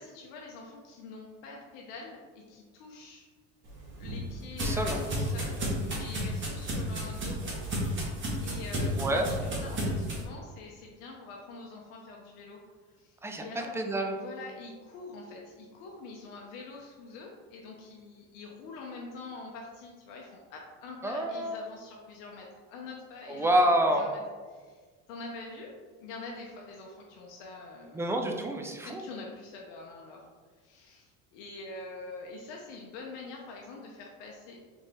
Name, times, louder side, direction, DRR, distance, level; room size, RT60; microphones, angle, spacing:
voice 1, 0.0-3.3 4.0-7.6 7.9-8.0 8.4-12.6 13.0-13.7 14.1-23.6 23.9-28.1 28.8-30.2 30.6-34.6, left 3 dB, 80° left, -1 dB, 0.7 m, -45 dB
sound 1, 3.6-10.2, equal, 35° right, 1.5 m, -33 dB
voice 2, 4.6-5.0 9.0-9.3 13.2-13.4 13.7-14.2 21.0-21.6 23.3-24.1 27.9-29.0, right 1 dB, 5° right, 3 dB, 0.5 m, -27 dB
3.8 x 3.5 x 3.3 m, 1.5 s
supercardioid pair, 100°, 36 cm